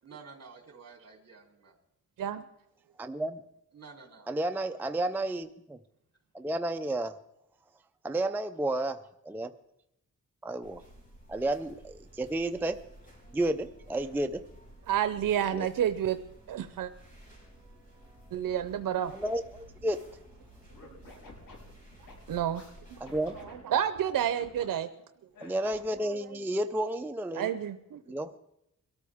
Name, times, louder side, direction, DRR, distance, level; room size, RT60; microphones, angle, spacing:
voice 1, 0.0-1.7 3.7-4.3, right 5 dB, 50° right, 2 dB, 3.1 m, -51 dB
voice 2, 3.0-3.4 4.3-5.8 6.3-7.2 8.0-9.5 10.4-10.8 11.3-12.8 13.3-14.4 15.5-15.7 19.0-20.0 23.0-23.4 25.4-27.5 28.1-28.4, right 1 dB, 5° right, 7 dB, 0.4 m, -32 dB
sound 1, 10.6-23.4, right 1 dB, 25° left, 5.2 m, -54 dB
voice 3, 14.9-16.2 16.5-16.9 18.3-19.1 22.3-22.6 22.9-23.0 23.7-24.9 27.4-28.0, right 10 dB, 80° right, 10 dB, 0.7 m, -29 dB
Scratching (performance technique), 20.7-22.6 23.1-24.7 25.3-26.0, left 3 dB, 85° left, 6.2 m, -50 dB
23.0 x 13.5 x 3.5 m, 0.80 s
wide cardioid pair, 125°, 33 cm